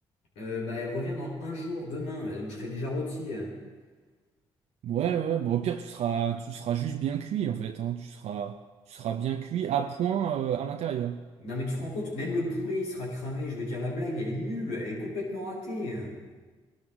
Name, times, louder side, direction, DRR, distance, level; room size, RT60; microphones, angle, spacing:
voice 1, 0.4-3.5 11.4-16.2, left 1 dB, 90° left, 4.0 m, -33 dB
voice 2, 4.8-8.6 8.9-11.2, right 9 dB, 70° right, 0.6 m, -29 dB
20.0 x 12.5 x 3.7 m
supercardioid pair, 50°, 11 cm